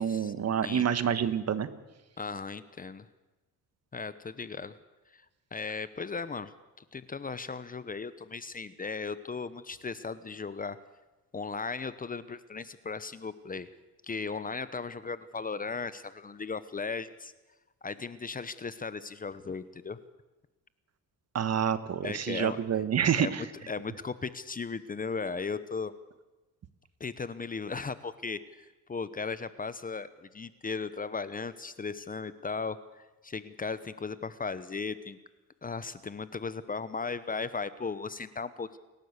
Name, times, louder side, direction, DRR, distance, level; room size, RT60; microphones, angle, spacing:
voice 1, 0.0-1.7 21.3-23.4, right 8 dB, 45° right, 13 dB, 1.4 m, -28 dB
voice 2, 2.2-3.1 3.9-4.8 5.1-5.2 5.5-6.5 6.9-10.8 11.3-13.7 14.0-17.3 17.8-20.0 22.0-22.6 23.2-25.9 27.0-35.2 35.6-38.8, left 4 dB, 25° left, 15 dB, 0.9 m, -37 dB
28.5 x 12.0 x 8.2 m, 1.1 s
cardioid pair, 105°, 35 cm